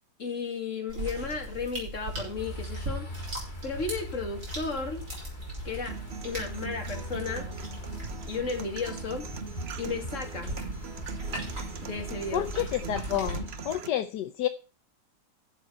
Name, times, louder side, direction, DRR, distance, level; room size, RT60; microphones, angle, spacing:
voice 1, 0.2-3.1 3.6-5.0 5.6-6.0 6.2-7.5 8.3-9.3 9.8-10.6 11.8-12.4, left 4 dB, 45° left, 3 dB, 2.7 m, -34 dB
sound 1, 0.9-13.4, right 1 dB, 90° right, 5.9 m, -40 dB
sound 2, 2.4-13.8, equal, 30° left, 2.0 m, -41 dB
sound 3, 5.9-13.9, right 7 dB, 50° right, 0.9 m, -41 dB
voice 2, 12.3-14.5, left 12 dB, 80° left, 9 dB, 1.3 m, -30 dB
11.5 x 7.4 x 5.5 m, 0.33 s
omnidirectional pair, 1.8 m